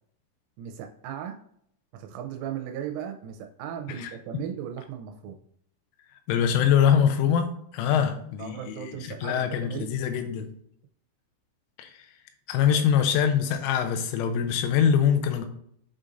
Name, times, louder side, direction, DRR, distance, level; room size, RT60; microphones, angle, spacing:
voice 1, 0.6-1.4 1.9-5.4 7.9-9.9 12.7-12.9, right 9 dB, 85° right, 4 dB, 3.1 m, -37 dB
voice 2, 3.9-4.4 6.3-10.5 11.8-11.9 12.5-15.5, left 8 dB, 85° left, 7 dB, 3.3 m, -24 dB
9.6 x 4.0 x 2.5 m, 0.67 s
omnidirectional pair, 5.7 m